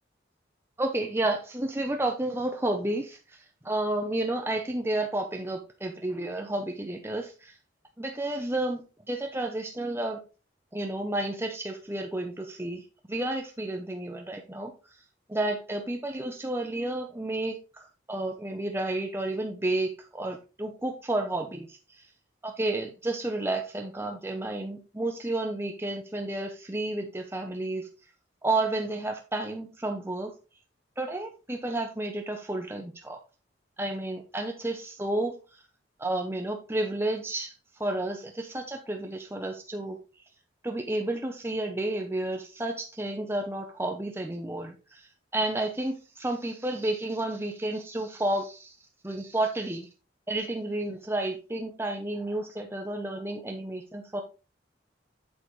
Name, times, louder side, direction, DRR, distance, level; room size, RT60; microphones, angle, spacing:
voice 1, 0.8-7.5 8.0-8.8 9.1-10.2 10.7-14.7 15.3-22.1 22.4-27.9 28.4-30.3 31.0-33.2 33.8-35.6 36.0-40.0 40.6-48.8 49.0-49.9 50.3-54.2, right 2 dB, 15° right, 3 dB, 0.8 m, -31 dB
8.2 x 7.7 x 3.2 m, 0.31 s
head